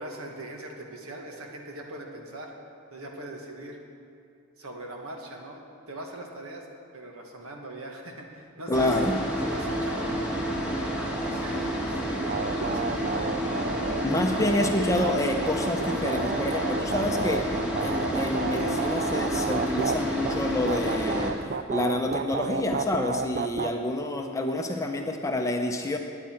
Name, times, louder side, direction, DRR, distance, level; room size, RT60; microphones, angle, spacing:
voice 1, 0.0-2.5 2.9-3.8 4.6-6.7 6.9-8.9 9.4-10.2 10.8-13.3, right 1 dB, 70° right, 1 dB, 1.7 m, -41 dB
voice 2, 8.7-9.2 14.0-17.5 17.8-21.4 21.7-26.0, left 1 dB, 15° left, 3 dB, 0.7 m, -28 dB
sound 1, 8.7-21.3, equal, 5° right, 1.5 m, -30 dB
sound 2, 12.3-19.9 20.2-20.4 20.6-23.7, right 5 dB, 40° right, 0.4 m, -31 dB
17.0 x 9.8 x 4.5 m, 2.6 s
head